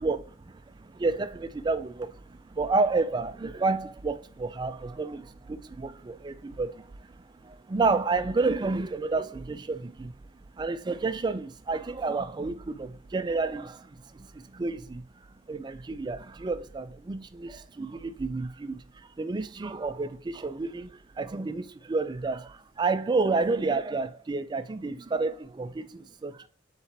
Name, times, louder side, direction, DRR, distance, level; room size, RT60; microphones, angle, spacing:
voice 1, 0.0-5.2 5.4-10.1 10.5-15.1 15.5-26.5, right 3 dB, 20° right, 0.3 m, -30 dB
4.3 x 3.7 x 3.0 m
head